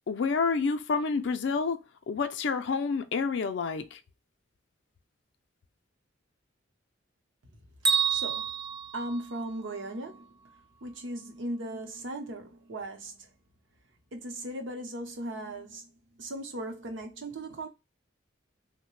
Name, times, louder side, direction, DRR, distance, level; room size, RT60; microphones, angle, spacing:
voice 1, 0.1-1.8 2.1-4.0, left 5 dB, 65° left, 0.4 m, -28 dB
Bell, 7.8-9.9, right 6 dB, 20° right, 0.5 m, -29 dB
voice 2, 8.1-8.5 8.9-10.3 10.8-13.3 14.1-15.9 16.2-17.7, right 1 dB, 70° right, 0.7 m, -37 dB
3.2 x 2.1 x 3.0 m
head